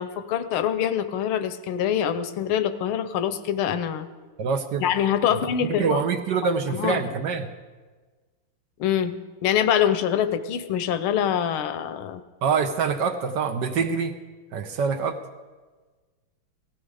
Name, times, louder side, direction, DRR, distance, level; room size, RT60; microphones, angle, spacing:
voice 1, 0.0-4.1 4.8-6.0 6.4-7.1 8.8-9.1 9.4-12.2, left 9 dB, 85° left, 11 dB, 1.7 m, -25 dB
voice 2, 4.4-4.9 5.3-5.4 5.7-7.5 12.4-14.2 14.5-15.2, right 5 dB, 65° right, 6 dB, 1.3 m, -25 dB
17.5 x 15.0 x 4.8 m, 1.3 s
omnidirectional pair, 2.3 m